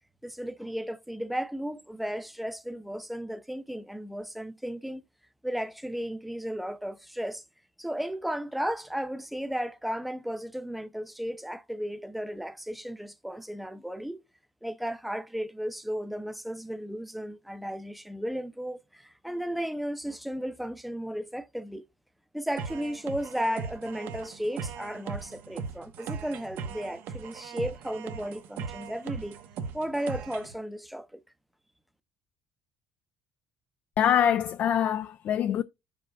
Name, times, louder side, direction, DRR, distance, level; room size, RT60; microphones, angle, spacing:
voice 1, 0.2-5.0 5.4-7.4 7.8-14.2 14.6-21.8 22.3-29.4 29.7-31.2, equal, ahead, 0.6 m, -34 dB
sound 1, 22.6-30.6, right 6 dB, 65° right, 0.9 m, -39 dB
voice 2, 34.0-35.6, left 9 dB, 45° left, 0.4 m, -24 dB
14.0 x 5.1 x 2.3 m
cardioid pair, 130°, 4 cm